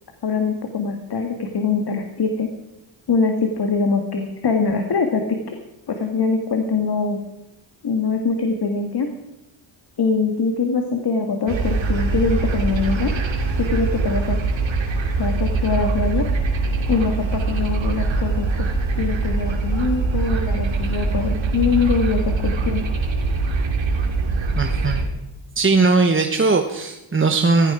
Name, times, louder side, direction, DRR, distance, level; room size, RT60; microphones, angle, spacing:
voice 1, 0.2-2.5 3.1-5.6 5.9-7.2 7.8-9.1 10.0-13.1 13.6-14.4 15.2-16.2 16.9-18.7 19.0-22.8, left 4 dB, 50° left, 5 dB, 1.8 m, -23 dB
sound 1, 11.5-25.0, right 3 dB, 65° right, 2.6 m, -22 dB
voice 2, 24.5-25.1 25.6-27.7, right 3 dB, 25° right, 5 dB, 1.1 m, -19 dB
16.5 x 14.5 x 4.9 m, 0.92 s
cardioid pair, 90°, 49 cm